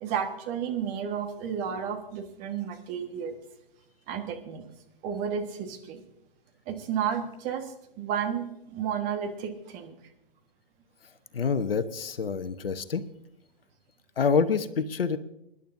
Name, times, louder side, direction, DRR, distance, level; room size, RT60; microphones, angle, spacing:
voice 1, 0.0-3.4 4.1-4.6 5.0-6.0 6.7-10.0, right 7 dB, 25° right, 5 dB, 1.5 m, -32 dB
voice 2, 11.3-13.0 14.2-15.2, left 5 dB, 70° left, 12 dB, 1.0 m, -26 dB
25.0 x 11.0 x 2.7 m, 0.85 s
figure-of-eight pair, 125°, 30 cm